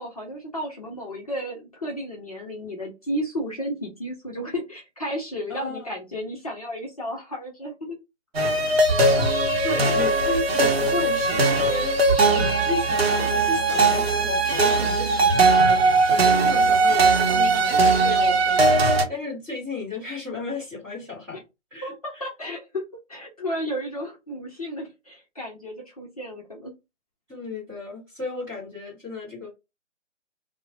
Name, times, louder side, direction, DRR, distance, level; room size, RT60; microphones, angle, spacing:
voice 1, 0.0-8.0 16.3-16.6 21.3-21.4 21.8-22.8 23.1-26.7, equal, 30° left, 0.6 m, -33 dB
voice 2, 5.5-5.9 9.6-12.0 12.3-21.4 21.7-21.9 27.3-29.5, left 3 dB, 5° right, 0.7 m, -34 dB
sound 1, 8.3-19.0, right 3 dB, 55° right, 0.7 m, -20 dB
3.0 x 2.0 x 2.2 m
figure-of-eight pair, 150°, 38 cm